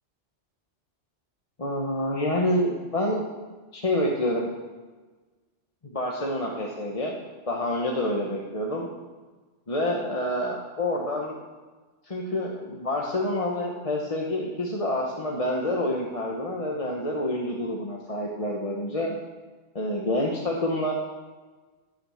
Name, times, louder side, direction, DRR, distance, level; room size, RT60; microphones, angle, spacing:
voice 1, 1.6-3.3 3.7-4.5 5.8-7.1 7.5-8.9 9.7-11.4 12.0-19.1 19.7-20.9, left 1 dB, 30° left, -2 dB, 1.1 m, -27 dB
15.5 x 6.4 x 6.4 m, 1.3 s
omnidirectional pair, 1.2 m